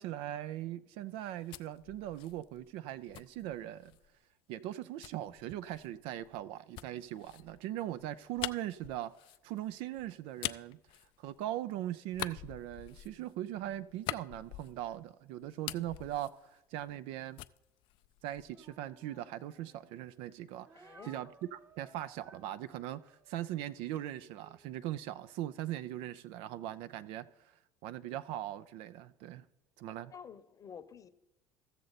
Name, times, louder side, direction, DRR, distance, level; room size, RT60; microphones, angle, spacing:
voice 1, 0.0-3.9 4.5-9.1 9.4-10.8 11.2-17.4 18.2-27.3 27.8-29.5 29.8-30.1, right 13 dB, 70° right, 0.4 m, -40 dB
sound 1, 1.1-4.1 5.0-11.7 12.1-15.1 15.4-17.1 17.4-18.7, left 16 dB, 60° left, 0.4 m, -45 dB
Speech, 18.4-20.0 20.6-24.7, right 3 dB, 25° right, 0.9 m, -60 dB
voice 2, 20.7-21.1 30.1-31.1, left 7 dB, 35° left, 0.8 m, -50 dB
15.0 x 6.6 x 4.0 m
hypercardioid pair, 75°, 10 cm